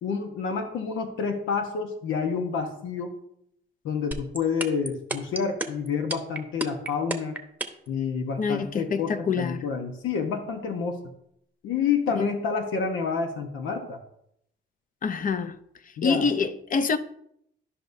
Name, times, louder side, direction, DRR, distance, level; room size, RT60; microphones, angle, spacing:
voice 1, 0.0-3.2 3.8-7.4 7.9-11.0 11.6-14.0 16.0-16.3, left 5 dB, 80° left, 1.1 m, -28 dB
sound 1, 4.1-7.9, right 2 dB, 10° right, 0.9 m, -30 dB
voice 2, 8.4-9.6 12.2-12.3 15.0-15.6 16.0-17.0, left 5 dB, 45° left, 0.7 m, -26 dB
12.5 x 5.4 x 2.7 m
cardioid pair, 90°, 20 cm